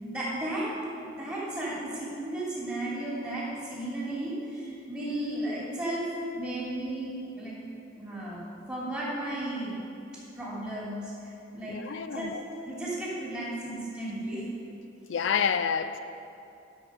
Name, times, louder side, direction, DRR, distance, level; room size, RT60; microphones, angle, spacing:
voice 1, 0.0-0.7 1.0-6.1 6.4-7.5 8.0-9.8 10.3-12.3 12.6-14.5, right 1 dB, 15° right, 2.7 m, -34 dB
voice 2, 11.7-12.4 15.1-16.0, left 7 dB, 70° left, 0.4 m, -28 dB
11.0 x 6.5 x 6.2 m
head